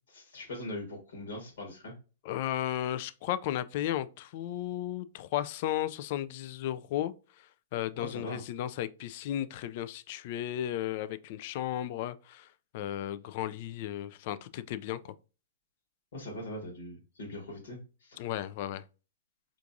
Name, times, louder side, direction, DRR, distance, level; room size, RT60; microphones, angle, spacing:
voice 1, 0.1-1.9 7.9-8.4 16.1-18.3, left 1 dB, 70° left, 1.3 m, -41 dB
voice 2, 2.2-12.5 12.7-15.1 18.2-18.8, left 12 dB, 50° left, 0.3 m, -34 dB
4.5 x 2.5 x 2.6 m
hypercardioid pair, 125°, 0 cm